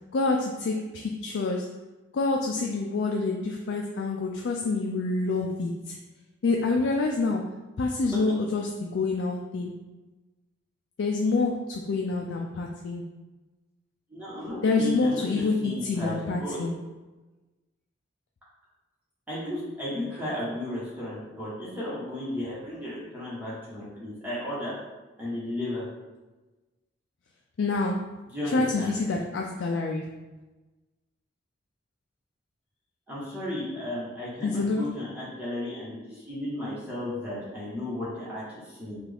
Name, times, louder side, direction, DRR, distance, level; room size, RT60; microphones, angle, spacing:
voice 1, 0.1-1.8 2.1-6.0 6.4-9.7 11.0-13.1 14.6-16.8 27.6-28.1 28.4-30.1 34.4-35.0, left 3 dB, 70° left, 1 dB, 0.4 m, -27 dB
voice 2, 14.1-16.6 19.3-24.7 25.2-25.8 28.3-29.0 33.1-39.0, left 1 dB, 10° right, -9 dB, 1.1 m, -34 dB
5.8 x 2.4 x 3.4 m, 1.2 s
head